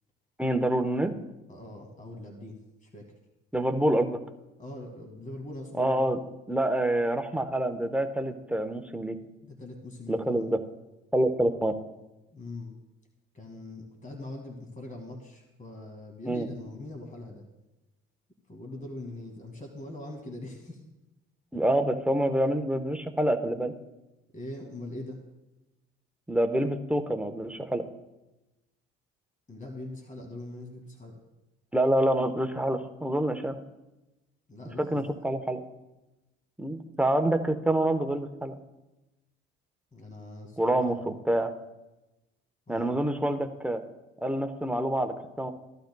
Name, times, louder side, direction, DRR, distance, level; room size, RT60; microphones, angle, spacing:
voice 1, 0.4-1.1 3.5-4.2 5.8-6.2 6.5-9.2 10.1-10.6 11.1-11.8 16.3-16.5 21.5-23.7 26.3-27.9 31.7-33.6 34.9-35.6 36.6-38.6 40.6-41.5 42.7-43.8 44.2-45.5, right 1 dB, 5° right, 6 dB, 1.1 m, -27 dB
voice 2, 1.5-3.1 4.6-6.1 9.4-10.5 12.3-12.7 13.3-17.4 18.5-20.8 24.3-25.2 29.5-31.2 34.5-35.0 39.9-41.1 42.7-42.9, left 2 dB, 25° left, 2 dB, 2.3 m, -42 dB
16.0 x 11.5 x 2.3 m, 1.0 s
hypercardioid pair, 60°, 30 cm